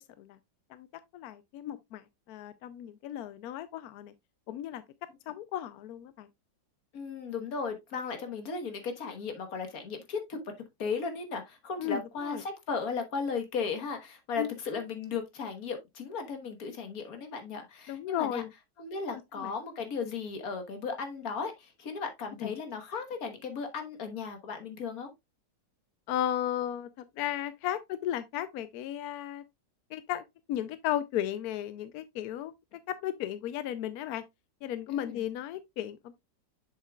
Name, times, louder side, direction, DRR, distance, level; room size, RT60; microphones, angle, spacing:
voice 1, 1.1-4.1 4.5-4.8 5.3-6.3 11.8-12.4 14.4-14.5 17.9-18.5 19.4-19.5 22.4-22.5 26.1-29.4 29.9-30.2 30.5-32.5 32.9-34.2 34.6-36.1, left 11 dB, 75° left, 0.9 m, -35 dB
voice 2, 6.9-10.4 10.8-18.4 18.8-25.1 34.9-35.2, left 5 dB, 50° left, 1.7 m, -36 dB
7.4 x 6.7 x 2.3 m
omnidirectional pair, 2.0 m